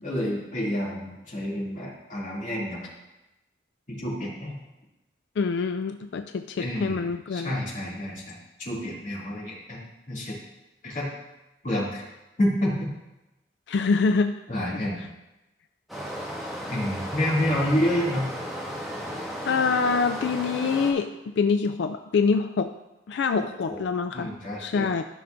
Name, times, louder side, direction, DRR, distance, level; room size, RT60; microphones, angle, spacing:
voice 1, 0.0-2.8 3.9-4.6 6.6-9.8 10.1-10.4 10.8-11.1 11.6-12.0 12.4-12.9 14.5-15.0 16.7-18.3 23.3-23.8 24.1-24.9, equal, 40° left, -6 dB, 2.6 m, -29 dB
voice 2, 5.4-7.5 13.7-14.4 19.5-22.7 23.1-24.3 24.6-25.0, left 5 dB, 70° left, 8 dB, 0.3 m, -25 dB
Stream, 15.9-20.9, equal, ahead, 1.3 m, -34 dB
13.0 x 5.8 x 2.6 m, 0.96 s
head